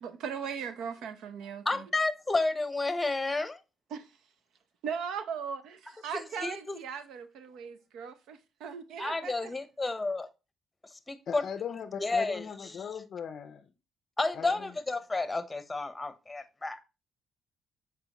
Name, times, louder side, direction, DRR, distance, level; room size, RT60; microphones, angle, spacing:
voice 1, 0.0-1.8 3.9-4.1 4.8-9.5, right 6 dB, 80° right, 0.7 m, -38 dB
voice 2, 1.6-3.6 6.1-6.8 9.0-10.3 11.1-11.4 12.0-12.4 12.7-12.8 14.2-16.8, left 3 dB, 15° left, 0.8 m, -31 dB
voice 3, 11.3-13.7 14.3-14.7, left 7 dB, 60° left, 0.4 m, -39 dB
6.8 x 4.7 x 2.9 m
cardioid pair, 90°, 0 cm